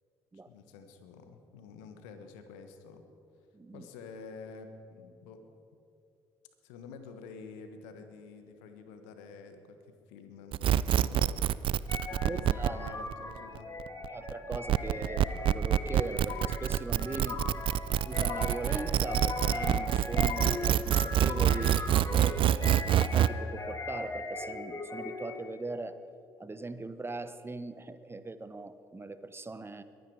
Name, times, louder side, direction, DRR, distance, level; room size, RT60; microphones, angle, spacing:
voice 1, 0.5-3.0 3.7-5.4 6.6-11.4 12.2-13.7, left 4 dB, 75° left, 7 dB, 1.2 m, -49 dB
voice 2, 3.5-3.9 12.1-13.0 14.1-17.4 18.0-26.0 26.4-29.8, right 3 dB, 20° right, 12 dB, 0.9 m, -40 dB
sound 1, 10.5-23.3, right 11 dB, 50° right, 0.4 m, -26 dB
sound 2, 11.9-25.5, left 3 dB, 25° left, 2.1 m, -39 dB
sound 3, 16.3-17.0 17.3-18.0 18.3-19.0 19.3-20.0 20.3-21.0 21.3-22.0, left 13 dB, 55° left, 0.4 m, -43 dB
22.0 x 9.4 x 4.7 m, 2.6 s
hypercardioid pair, 50°, 11 cm